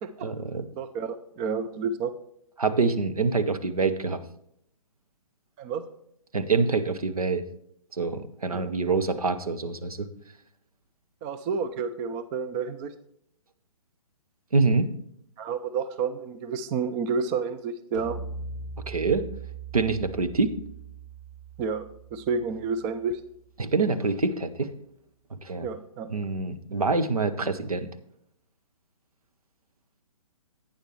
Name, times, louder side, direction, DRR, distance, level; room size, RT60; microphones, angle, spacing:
voice 1, 0.2-0.7 2.6-4.2 6.3-7.4 8.0-10.1 14.5-14.9 18.9-19.3 19.7-20.5 23.6-24.7 25.4-25.7 26.1-27.9, right 4 dB, 75° right, 9 dB, 1.0 m, -25 dB
voice 2, 0.8-2.1 5.6-5.9 8.5-8.7 11.2-12.9 15.4-18.2 21.6-21.9 22.1-23.2 25.6-26.3, right 5 dB, 15° right, 11 dB, 0.4 m, -30 dB
sound 1, 17.9-23.4, right 4 dB, 55° right, 2.7 m, -41 dB
11.0 x 9.0 x 3.2 m, 0.71 s
figure-of-eight pair, 130°, 19 cm